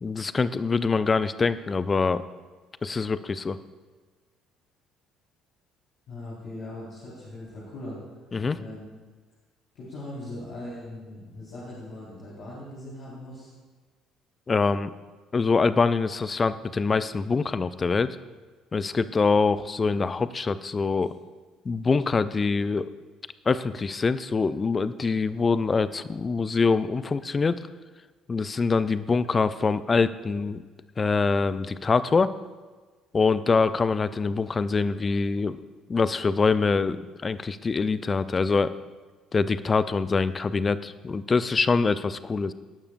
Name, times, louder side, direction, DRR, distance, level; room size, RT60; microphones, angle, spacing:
voice 1, 0.0-2.2 2.8-3.6 8.3-8.6 14.5-14.9 15.3-18.2 18.7-21.1 21.6-22.9 23.5-27.6 28.3-30.6 31.0-32.3 33.1-35.6 35.9-38.7 39.3-42.5, left 4 dB, 30° left, 15 dB, 0.6 m, -24 dB
voice 2, 6.1-8.0 8.5-8.9 9.7-13.5, left 1 dB, 55° left, -8 dB, 4.4 m, -40 dB
20.5 x 11.5 x 2.6 m, 1.4 s
figure-of-eight pair, 50°, 0 cm